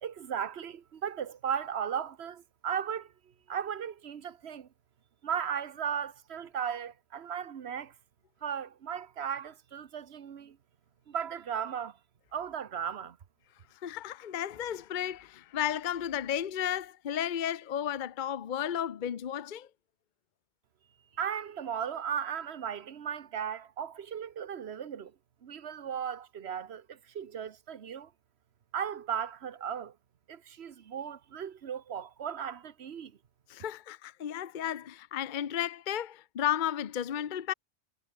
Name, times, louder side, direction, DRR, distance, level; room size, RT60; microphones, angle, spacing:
voice 1, 0.0-3.1 3.5-4.7 5.2-7.9 8.4-10.6 11.1-12.0 12.3-13.2 21.1-25.1 25.4-28.1 28.7-30.0 30.3-33.1, right 8 dB, 70° right, 1.3 m, -36 dB
voice 2, 13.8-19.7 33.5-37.5, left 10 dB, 50° left, 0.8 m, -33 dB
omnidirectional pair, 1.1 m